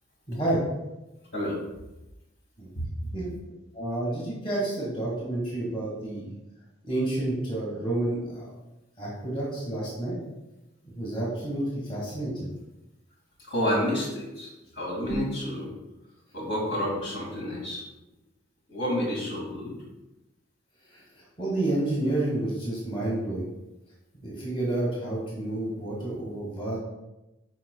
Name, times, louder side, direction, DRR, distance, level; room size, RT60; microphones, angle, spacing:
voice 1, 0.3-0.6 2.6-2.7 3.1-3.3 3.7-6.3 6.8-8.4 9.0-10.2 10.8-12.5 15.1-15.2 21.4-23.5 24.2-26.8, right 1 dB, 25° left, -5 dB, 1.7 m, -29 dB
voice 2, 2.8-3.1 13.4-15.7 16.3-17.8 18.7-19.7, equal, 60° left, -3 dB, 2.1 m, -30 dB
10.5 x 4.6 x 2.3 m, 0.98 s
head